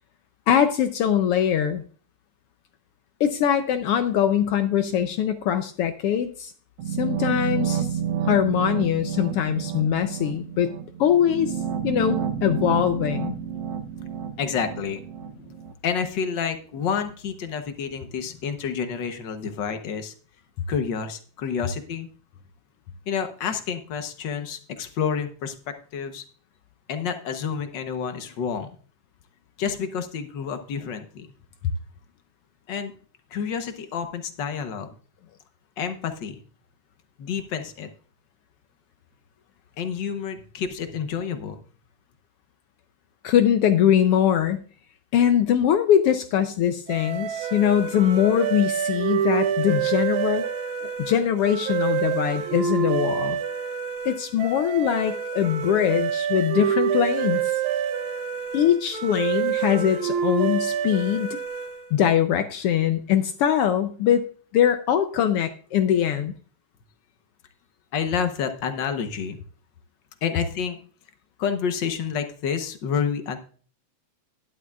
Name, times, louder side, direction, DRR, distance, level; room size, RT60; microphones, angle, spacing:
voice 1, 0.5-1.8 3.2-6.5 7.0-8.0 8.3-10.7 11.0-11.6 11.8-13.4 43.2-44.6 45.1-50.5 50.8-53.4 54.0-57.4 58.5-61.4 61.9-64.3 64.5-66.3, left 9 dB, 80° left, 9 dB, 1.3 m, -22 dB
sound 1, 6.8-15.7, right 8 dB, 65° right, 1.8 m, -30 dB
voice 2, 14.4-15.6 15.8-20.1 20.7-22.1 23.1-26.2 26.9-28.7 29.6-31.3 32.7-32.9 33.3-34.9 35.8-36.4 37.2-37.9 39.8-41.7 67.9-69.4 70.2-70.8 71.4-73.4, left 7 dB, 65° left, 8 dB, 1.1 m, -29 dB
sound 2, 46.9-62.0, right 8 dB, 85° right, 2.7 m, -27 dB
11.5 x 11.0 x 2.4 m, 0.42 s
omnidirectional pair, 3.3 m